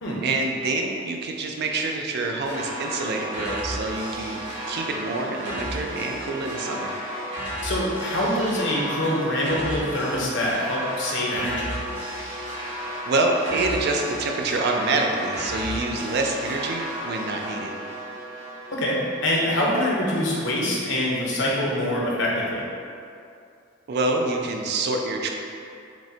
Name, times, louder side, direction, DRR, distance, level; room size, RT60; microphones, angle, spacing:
voice 1, 0.2-4.4 4.7-6.9 13.1-17.7 23.9-25.3, right 2 dB, 60° right, 2 dB, 0.4 m, -26 dB
sound 1, 2.4-19.3, equal, 80° right, 1.1 m, -33 dB
voice 2, 7.6-11.7 18.7-22.6, left 1 dB, 65° left, -4 dB, 0.8 m, -25 dB
6.0 x 2.1 x 2.7 m, 2.5 s
head